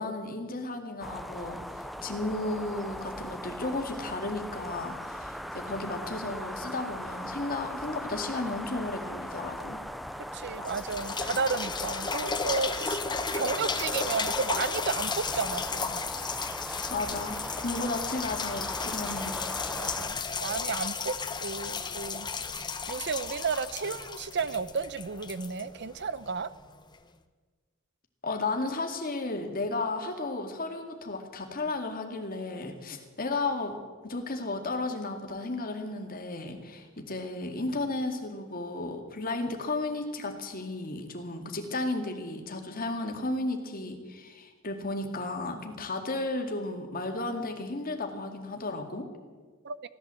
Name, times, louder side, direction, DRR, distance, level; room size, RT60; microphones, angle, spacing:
voice 1, 0.0-9.8 16.9-19.4 28.2-49.1, left 2 dB, 45° left, 4 dB, 2.1 m, -34 dB
sound 1, 1.0-20.1, equal, ahead, 0.5 m, -39 dB
voice 2, 10.3-13.0 13.3-16.0 19.8-22.3 22.5-22.6 22.9-26.5 49.6-49.8, right 5 dB, 55° right, 15 dB, 0.7 m, -33 dB
sound 2, 10.6-26.3 26.9-27.0, left 5 dB, 20° left, 0.9 m, -34 dB
16.5 x 12.0 x 7.6 m, 1.4 s
head